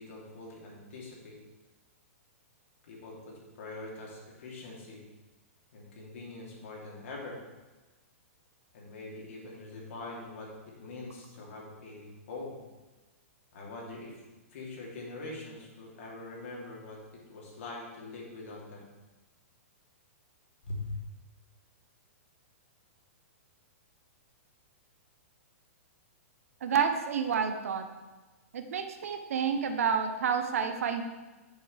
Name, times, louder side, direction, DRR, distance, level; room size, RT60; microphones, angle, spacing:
voice 1, 0.0-1.4 2.8-5.1 5.7-7.4 8.7-10.5 10.8-12.6 13.5-14.1 14.5-18.9 20.6-20.9, left 2 dB, 65° left, -3 dB, 3.4 m, -43 dB
voice 2, 26.6-27.8 28.5-31.0, right 6 dB, 75° right, 7 dB, 1.0 m, -29 dB
11.0 x 7.0 x 3.5 m, 1.2 s
hypercardioid pair, 135°, 8 cm